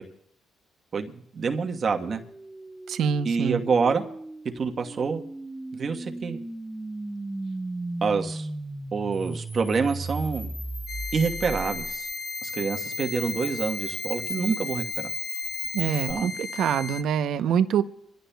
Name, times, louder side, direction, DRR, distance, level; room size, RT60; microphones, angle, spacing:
voice 1, 0.9-2.2 3.2-4.0 4.5-5.2 5.7-6.4 8.0-8.5 8.9-10.5 11.1-12.1 12.4-15.1 16.1-16.3, right 5 dB, 45° right, 4 dB, 1.2 m, -27 dB
sound 1, 2.1-12.1, right 2 dB, 15° right, 0.6 m, -36 dB
voice 2, 2.9-3.6 15.7-17.8, right 8 dB, 75° right, 11 dB, 0.7 m, -25 dB
Camera, 9.1-16.1, left 2 dB, 30° left, 1.5 m, -37 dB
sound 2, 10.9-17.0, left 4 dB, 55° left, 0.5 m, -36 dB
24.0 x 15.5 x 2.3 m, 0.71 s
cardioid pair, 90°, 0 cm